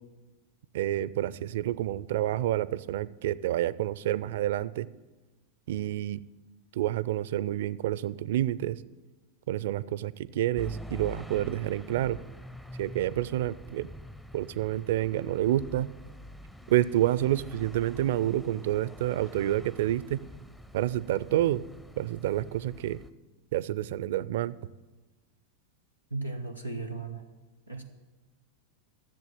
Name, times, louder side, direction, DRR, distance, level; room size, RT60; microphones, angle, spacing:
voice 1, 0.7-4.9 5.7-6.2 6.7-8.8 9.5-12.2 12.8-13.9 14.3-15.9 16.7-20.2 20.7-21.6 22.0-23.0 23.5-24.5, right 13 dB, 55° right, 19 dB, 0.4 m, -28 dB
sound 1, 10.5-23.1, left 1 dB, 5° left, 0.5 m, -46 dB
voice 2, 26.1-27.3 27.7-27.8, right 3 dB, 90° left, 3 dB, 0.9 m, -36 dB
11.0 x 7.4 x 7.4 m, 1.2 s
figure-of-eight pair, 90°, 0 cm